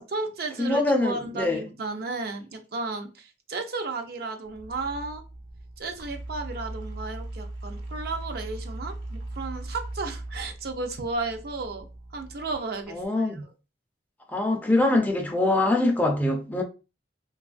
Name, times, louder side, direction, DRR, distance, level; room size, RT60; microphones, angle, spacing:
voice 1, 0.0-5.2 5.8-11.9 12.1-13.5, right 3 dB, 60° right, 0.5 m, -34 dB
voice 2, 0.6-1.6 12.9-13.4 14.3-16.6, left 2 dB, 10° left, 0.4 m, -23 dB
sound 1, 4.4-13.1, right 1 dB, 80° right, 0.9 m, -39 dB
2.9 x 2.3 x 2.4 m
head